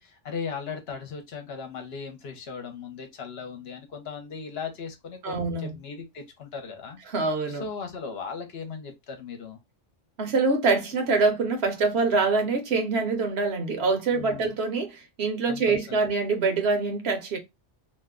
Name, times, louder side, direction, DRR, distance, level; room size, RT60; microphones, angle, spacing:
voice 1, 0.0-7.0 7.5-9.6 14.1-14.5 15.5-16.1, left 5 dB, 65° left, 0.9 m, -37 dB
voice 2, 5.2-5.8 7.1-7.6 10.2-17.4, right 4 dB, 65° right, 0.9 m, -25 dB
2.5 x 2.1 x 3.5 m
omnidirectional pair, 1.2 m